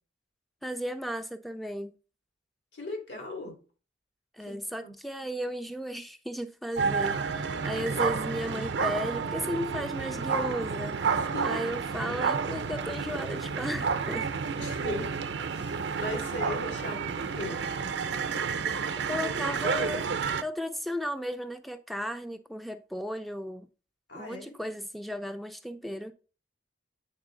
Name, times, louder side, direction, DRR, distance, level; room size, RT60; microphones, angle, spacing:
voice 1, 0.6-1.9 4.3-14.3 19.1-20.1 20.4-23.7 24.1-26.1, equal, ahead, 0.4 m, -35 dB
voice 2, 2.7-3.6 4.5-4.9 11.2-11.7 14.5-15.1 15.5-17.7 24.1-24.6, left 2 dB, 80° left, 2.6 m, -38 dB
sound 1, 6.8-20.4, right 5 dB, 70° right, 0.6 m, -30 dB
8.8 x 3.7 x 3.7 m
head